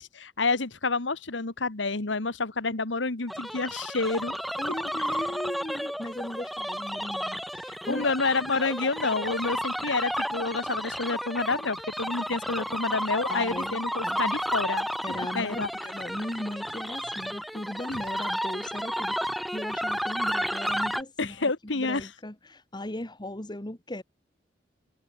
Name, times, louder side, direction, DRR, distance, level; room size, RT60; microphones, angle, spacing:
voice 1, 0.0-4.4 4.9-5.0 7.9-15.7 17.9-18.0 21.2-22.1, left 3 dB, 80° left, 1.7 m, -29 dB
sound 1, 3.3-21.0, equal, ahead, 0.8 m, -32 dB
voice 2, 4.6-8.1 13.3-14.3 15.0-24.0, left 1 dB, 25° left, 2.1 m, -38 dB
head